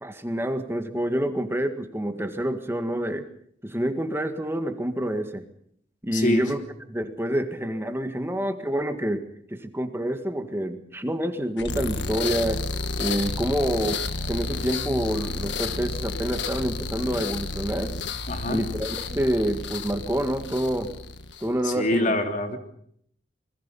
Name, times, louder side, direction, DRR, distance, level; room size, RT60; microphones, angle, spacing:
voice 1, 0.0-3.3 3.6-5.4 6.0-6.6 6.9-12.7 13.0-17.9 18.5-20.9 21.4-22.1, equal, 15° right, 7 dB, 1.8 m, -27 dB
voice 2, 6.1-6.5 18.3-18.6 21.6-22.6, left 1 dB, 45° left, 5 dB, 3.2 m, -25 dB
sound 1, 11.6-21.6, left 3 dB, 75° left, 1.5 m, -31 dB
26.5 x 21.5 x 5.5 m, 0.68 s
head